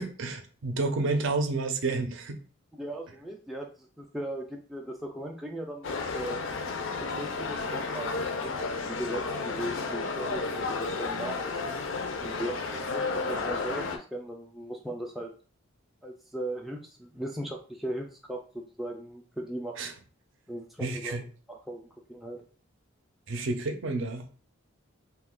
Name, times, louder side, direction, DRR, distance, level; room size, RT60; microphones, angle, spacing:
voice 1, 0.0-2.4 19.8-19.9 20.8-21.2 23.3-24.3, right 3 dB, 60° right, 7 dB, 0.5 m, -30 dB
voice 2, 2.8-6.4 7.0-11.5 12.2-15.3 16.0-19.9 20.5-21.2 21.5-22.4, right 1 dB, ahead, 0 dB, 0.3 m, -38 dB
sound 1, 5.8-14.0, left 4 dB, 65° left, 0.4 m, -32 dB
2.7 x 2.3 x 3.6 m, 0.39 s
head